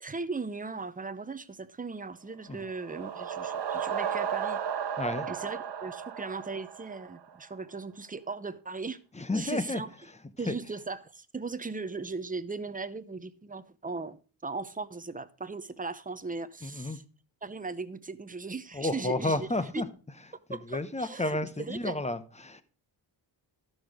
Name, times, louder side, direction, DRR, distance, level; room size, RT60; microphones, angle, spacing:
voice 1, 0.0-5.0 5.3-9.0 9.3-9.9 10.4-17.0 17.4-19.5 19.7-19.8 20.5-21.9, right 4 dB, 20° right, 0.7 m, -38 dB
sound 1, 2.5-7.4, right 8 dB, 65° right, 1.2 m, -34 dB
voice 2, 5.0-5.3 9.1-10.6 16.6-17.0 18.7-19.9 20.5-22.6, left 2 dB, 15° left, 0.9 m, -32 dB
12.5 x 6.4 x 5.0 m
cardioid pair, 95°, 44 cm